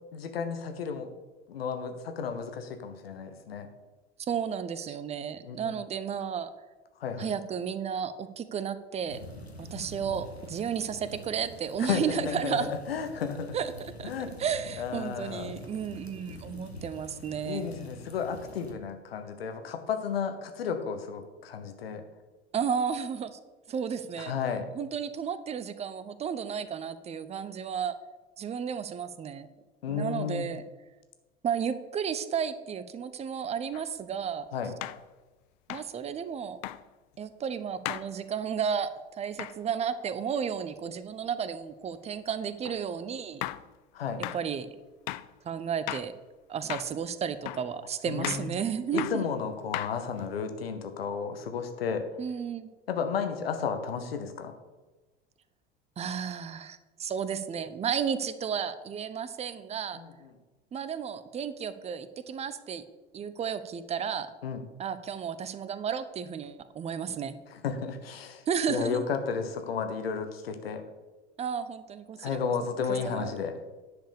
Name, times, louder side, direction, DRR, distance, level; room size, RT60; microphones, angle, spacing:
voice 1, 0.1-1.1 1.5-3.7 5.4-5.7 7.0-7.3 11.9-13.6 14.0-14.3 14.8-15.5 17.5-22.0 24.2-24.7 29.8-30.5 34.5-34.7 43.9-44.2 48.1-48.5 48.9-52.1 52.9-54.5 59.9-60.3 64.4-64.6 67.5-68.4 68.7-70.8 72.2-73.6, left 6 dB, 70° left, 7 dB, 1.2 m, -33 dB
voice 2, 4.2-6.5 7.2-9.2 9.6-12.7 13.5-14.1 14.4-17.7 22.5-23.4 23.7-24.3 24.7-27.9 28.4-29.5 29.9-30.6 31.4-34.5 35.7-36.6 37.2-38.9 39.2-43.4 44.3-44.7 45.4-46.1 46.5-49.3 52.2-52.7 56.0-60.0 60.7-62.8 63.1-64.3 64.8-67.3 68.5-69.1 71.4-72.4 73.1-73.3, right 7 dB, 20° right, 13 dB, 0.7 m, -33 dB
sound 1, 9.1-18.7, left 1 dB, 85° left, 1.3 m, -46 dB
sound 2, 33.7-33.9 34.8-35.0 35.7-35.9 36.6-36.8 37.8-38.1 39.4-39.6 42.6-42.8 43.4-43.7 44.2-44.4 45.1-45.3 45.9-46.1 46.7-47.0 47.4-47.7 48.2-48.5 49.0-49.2 49.7-50.2, left 16 dB, 50° left, 0.5 m, -36 dB
10.5 x 5.0 x 6.7 m, 1.2 s
figure-of-eight pair, 75°, 31 cm